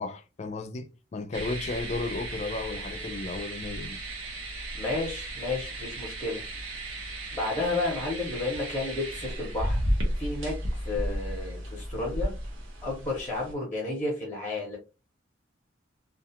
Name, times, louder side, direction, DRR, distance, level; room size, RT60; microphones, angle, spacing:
voice 1, 0.0-4.0, left 3 dB, 35° left, 0.3 m, -34 dB
sound 1, 1.3-13.5, right 1 dB, 75° right, 0.9 m, -34 dB
voice 2, 4.7-6.4 7.3-9.9 10.2-12.3 12.8-14.8, left 2 dB, 5° left, 0.8 m, -32 dB
2.5 x 2.4 x 2.7 m
head